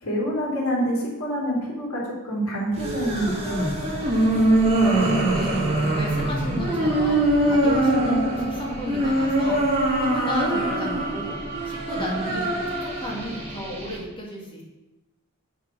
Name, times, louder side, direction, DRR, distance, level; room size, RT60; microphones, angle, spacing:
voice 1, 0.0-3.7 12.1-12.4, equal, 70° left, -4 dB, 3.6 m, -27 dB
sound 1, 2.7-14.0, right 1 dB, 30° right, 2.3 m, -23 dB
voice 2, 5.3-9.6 10.0-11.4 11.6-14.6, equal, 25° left, -3 dB, 2.3 m, -34 dB
7.3 x 5.9 x 6.1 m, 1.0 s
head